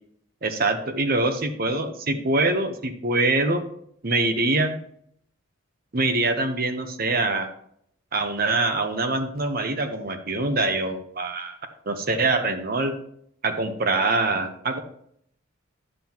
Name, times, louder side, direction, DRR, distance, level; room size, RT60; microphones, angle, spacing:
voice 1, 0.4-3.6 4.0-4.8 5.9-7.5 8.1-11.5 11.9-13.0 13.4-14.8, right 2 dB, 45° right, 8 dB, 0.9 m, -24 dB
9.9 x 7.4 x 2.9 m, 0.69 s
head